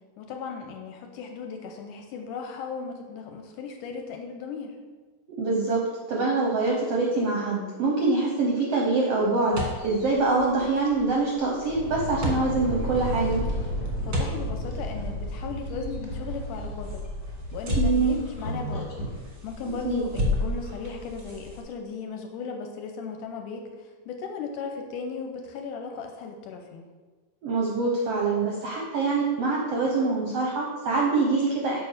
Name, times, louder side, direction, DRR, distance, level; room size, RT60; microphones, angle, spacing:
voice 1, 0.2-4.8 14.1-18.9 19.4-26.9, left 5 dB, 75° left, 4 dB, 2.1 m, -36 dB
voice 2, 5.4-13.4 17.7-18.2 19.8-20.0 27.4-31.8, right 3 dB, 75° right, -2 dB, 1.4 m, -25 dB
sound 1, 9.5-21.6, left 1 dB, 50° right, 1.1 m, -34 dB
sound 2, 11.6-19.2, equal, 35° left, 1.9 m, -33 dB
6.8 x 4.6 x 6.6 m, 1.4 s
omnidirectional pair, 4.1 m